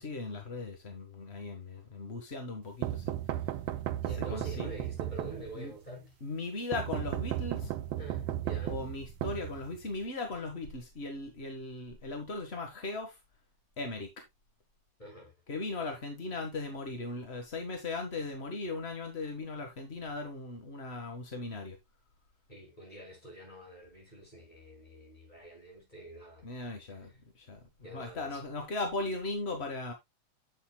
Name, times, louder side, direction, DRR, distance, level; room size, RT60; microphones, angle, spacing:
voice 1, 0.0-3.1 4.2-4.7 5.5-5.7 6.2-7.7 8.7-13.2 13.8-14.1 15.5-21.8 26.4-29.9, left 3 dB, 40° left, 0.9 m, -38 dB
sound 1, 2.8-5.8 6.7-10.0, right 13 dB, 70° right, 1.6 m, -35 dB
voice 2, 4.0-6.1 8.0-8.8 15.0-15.3 22.5-26.4 27.8-28.4, right 1 dB, 15° left, 6.3 m, -46 dB
9.5 x 8.4 x 2.2 m
omnidirectional pair, 3.3 m